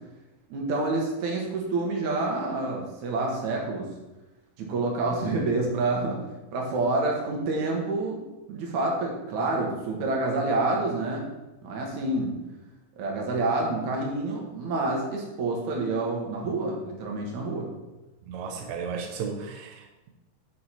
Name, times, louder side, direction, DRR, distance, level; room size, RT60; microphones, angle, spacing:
voice 1, 0.5-3.9 4.6-6.2 6.5-11.2 11.6-12.3 13.0-17.7, right 2 dB, 60° right, 0 dB, 2.4 m, -28 dB
voice 2, 18.3-20.1, right 5 dB, 85° right, 3 dB, 1.7 m, -34 dB
6.7 x 6.6 x 4.3 m, 1.1 s
omnidirectional pair, 4.5 m